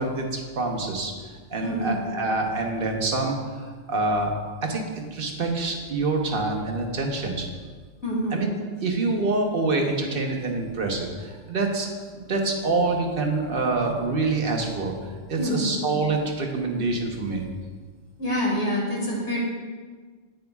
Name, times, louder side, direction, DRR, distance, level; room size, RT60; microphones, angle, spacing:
voice 1, 0.0-7.4 8.3-8.5 8.8-11.9 12.1-14.9 15.3-17.4, right 3 dB, 45° right, 2 dB, 1.1 m, -26 dB
voice 2, 1.6-2.0 8.0-8.4 15.4-15.7 18.2-19.4, left 1 dB, 55° left, -5 dB, 2.6 m, -26 dB
9.3 x 9.1 x 2.3 m, 1.5 s
omnidirectional pair, 1.4 m